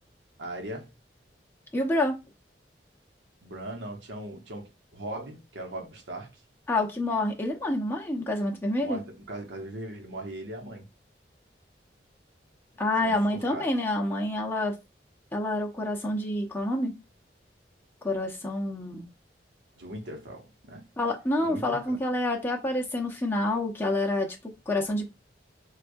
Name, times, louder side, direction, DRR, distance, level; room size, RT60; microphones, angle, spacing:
voice 1, 0.4-0.9 3.4-6.4 8.8-10.9 13.0-13.7 19.8-20.9 21.4-22.0, right 1 dB, 85° right, 0.9 m, -39 dB
voice 2, 1.7-2.2 6.7-9.0 12.8-14.8 15.3-17.0 18.0-19.1 21.0-25.1, left 1 dB, 10° left, 0.7 m, -28 dB
4.7 x 2.3 x 2.6 m
head